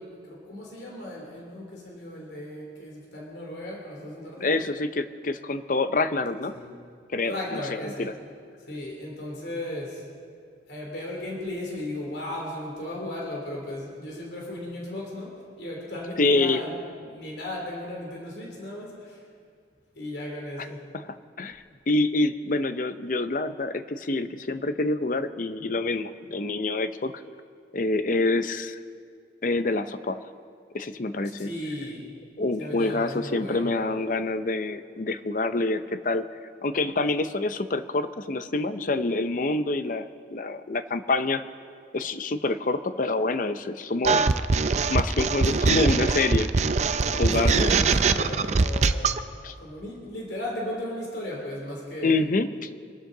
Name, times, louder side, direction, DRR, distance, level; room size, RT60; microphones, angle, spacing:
voice 1, 0.0-4.6 6.5-6.7 7.2-8.1 8.7-10.0 10.7-16.7 17.0-19.2 20.0-20.8 31.3-32.0 32.6-33.8 47.4-49.1 49.6-52.2, left 1 dB, 65° left, -2 dB, 3.1 m, -36 dB
voice 2, 4.4-6.6 7.1-8.1 16.2-16.6 20.6-20.7 20.9-27.2 27.7-28.8 29.4-30.3 30.7-31.5 32.4-36.2 36.6-41.4 41.9-44.2 44.9-46.5 47.1-47.7 49.4-49.5 52.0-52.7, left 2 dB, 45° left, 11 dB, 0.6 m, -27 dB
sound 1, 44.0-49.2, right 4 dB, 40° right, 0.4 m, -22 dB
25.0 x 12.5 x 3.9 m, 2.2 s
head